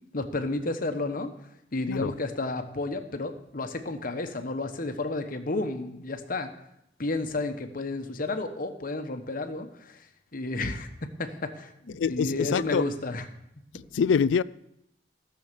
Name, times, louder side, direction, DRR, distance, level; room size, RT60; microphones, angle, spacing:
voice 1, 0.1-1.3 1.7-6.5 7.0-10.1 10.3-13.3, left 2 dB, 50° left, 1.1 m, -32 dB
voice 2, 12.0-12.8 13.9-14.4, left 6 dB, 85° left, 0.4 m, -25 dB
14.0 x 7.0 x 6.8 m
head